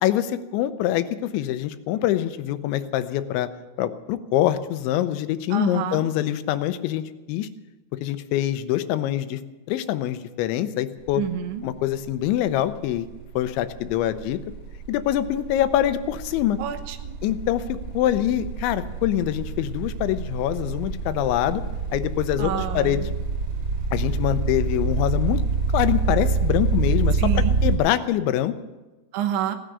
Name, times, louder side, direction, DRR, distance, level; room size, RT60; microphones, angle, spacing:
voice 1, 0.0-3.5 3.8-7.5 8.0-9.4 9.7-11.2 11.6-13.1 13.4-14.4 14.9-16.6 17.2-17.6 17.9-21.6 21.9-23.0 23.9-25.4 25.7-28.5, left 12 dB, 90° left, 11 dB, 3.2 m, -24 dB
voice 2, 5.5-6.1 11.2-11.6 16.6-17.1 22.4-23.1 27.2-27.6 29.1-29.6, right 10 dB, 85° right, 7 dB, 3.4 m, -28 dB
sound 1, 11.0-11.3 11.6-27.8, right 4 dB, 20° right, 4.2 m, -27 dB
17.0 x 9.9 x 8.1 m, 1.1 s
omnidirectional pair, 5.2 m